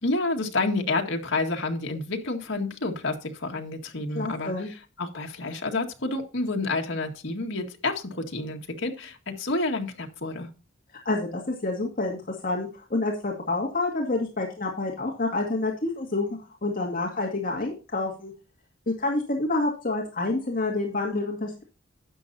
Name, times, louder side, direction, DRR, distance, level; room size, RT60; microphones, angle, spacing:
voice 1, 0.0-10.5, left 2 dB, 70° left, 2 dB, 1.9 m, -29 dB
voice 2, 4.1-4.7 11.0-18.3 18.9-21.6, left 2 dB, 45° left, 0 dB, 2.2 m, -28 dB
12.0 x 9.0 x 2.7 m, 0.32 s
head